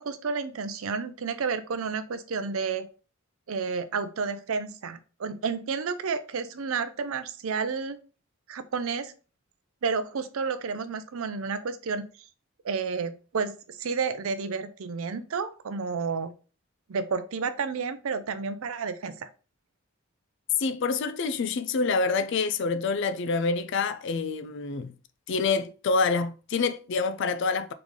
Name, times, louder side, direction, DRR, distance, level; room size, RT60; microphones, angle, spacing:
voice 1, 0.0-2.9 3.5-8.0 8.5-9.1 9.8-12.1 12.6-16.3 16.9-19.3, right 5 dB, 70° right, 0.5 m, -31 dB
voice 2, 20.6-24.9 25.3-27.7, left 4 dB, 55° left, 0.4 m, -27 dB
3.9 x 3.2 x 3.6 m
head